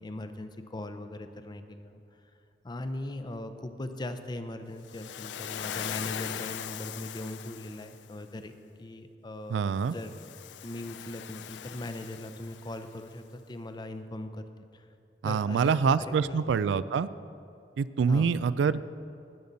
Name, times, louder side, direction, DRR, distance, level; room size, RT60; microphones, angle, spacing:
voice 1, 0.0-2.0 2.6-8.5 8.8-9.6 9.9-10.1 10.6-14.5 14.7-14.9 15.2-16.4 18.1-18.3, left 1 dB, 25° left, 9 dB, 0.5 m, -39 dB
Waves surf, 4.9-8.1 9.9-12.9, left 9 dB, 75° left, 0.4 m, -40 dB
voice 2, 9.5-10.0 15.2-17.1 17.8-18.9, right 6 dB, 85° right, 16 dB, 0.3 m, -26 dB
18.5 x 6.9 x 4.0 m, 2.6 s
head